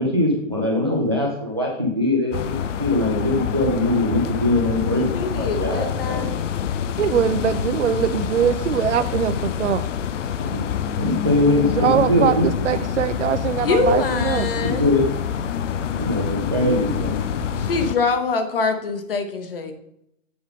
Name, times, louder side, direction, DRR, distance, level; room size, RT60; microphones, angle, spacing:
voice 1, 0.0-6.4 10.9-12.4 14.6-15.0 15.9-17.1, left 1 dB, 20° right, 0 dB, 0.4 m, -22 dB
sound 1, 2.3-18.0, left 8 dB, 70° left, 0.6 m, -26 dB
voice 2, 5.1-6.4 13.6-14.9 17.6-19.7, left 4 dB, 45° left, 8 dB, 0.9 m, -24 dB
voice 3, 7.0-9.8 11.7-14.5, right 8 dB, 65° right, 12 dB, 0.7 m, -22 dB
7.8 x 3.7 x 5.3 m, 0.76 s
hypercardioid pair, 180°, 38 cm